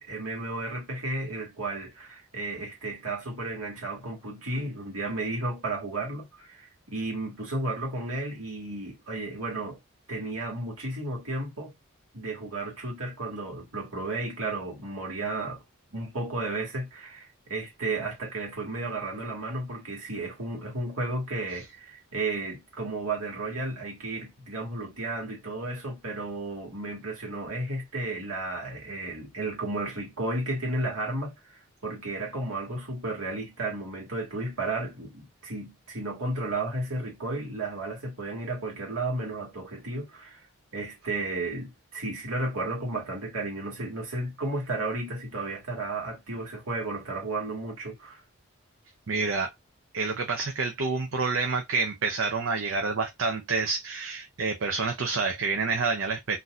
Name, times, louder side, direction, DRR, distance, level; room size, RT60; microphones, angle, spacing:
voice 1, 0.0-9.8 10.1-11.7 12.1-15.6 15.9-40.4 40.7-48.2, right 2 dB, 80° right, 1.7 m, -33 dB
voice 2, 49.1-49.5 49.9-56.4, right 4 dB, 60° right, 0.6 m, -28 dB
4.0 x 2.6 x 2.4 m
head